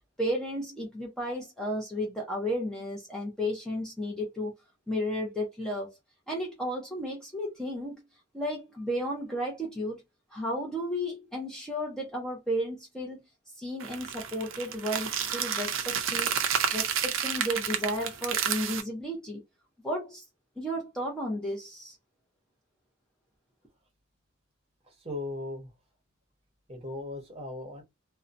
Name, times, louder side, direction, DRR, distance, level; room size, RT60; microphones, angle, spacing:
voice 1, 0.2-4.5 4.9-6.0 6.3-8.0 8.3-10.0 10.3-13.2 13.6-16.3 16.7-19.4 19.8-20.2 20.6-22.0, equal, 5° left, 0.6 m, -33 dB
sound 1, 13.8-18.8, right 8 dB, 85° right, 0.5 m, -30 dB
voice 2, 25.0-25.7 26.7-27.8, left 2 dB, 30° right, 0.9 m, -37 dB
2.6 x 2.1 x 2.5 m
head